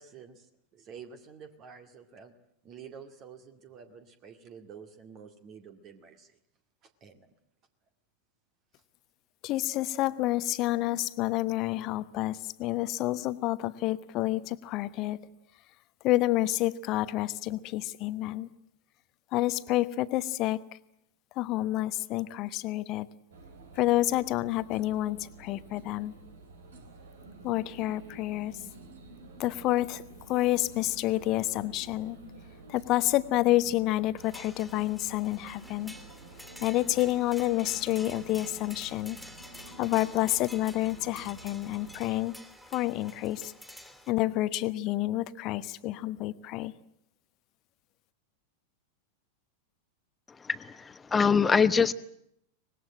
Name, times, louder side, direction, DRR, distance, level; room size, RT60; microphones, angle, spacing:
voice 1, 0.0-2.3 2.6-6.4 6.8-7.3, right 6 dB, 30° right, 8 dB, 2.2 m, -49 dB
voice 2, 9.4-15.2 16.0-18.5 19.3-20.6 21.3-23.1 23.7-26.1 27.4-28.5 29.4-32.2 32.7-35.9 36.6-39.2 39.8-42.3 42.7-43.5 44.1-46.7, left 16 dB, 40° left, 14 dB, 1.1 m, -29 dB
sound 1, 23.3-42.2, right 3 dB, 65° right, 3.0 m, -50 dB
sound 2, 34.2-44.1, left 1 dB, ahead, 3.2 m, -49 dB
voice 3, 50.4-51.9, left 6 dB, 15° left, 14 dB, 1.1 m, -24 dB
25.0 x 20.0 x 8.8 m, 0.75 s
figure-of-eight pair, 90°, 0 cm